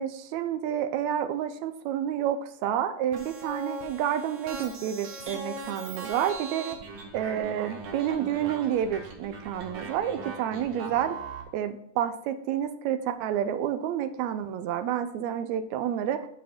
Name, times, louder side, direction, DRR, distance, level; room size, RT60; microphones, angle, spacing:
voice 1, 0.0-6.8 7.1-11.2 11.5-16.3, right 10 dB, 80° right, 10 dB, 1.7 m, -29 dB
sound 1, 3.1-11.4, right 3 dB, 55° right, 2.2 m, -40 dB
7.3 x 7.1 x 4.3 m, 0.71 s
omnidirectional pair, 3.7 m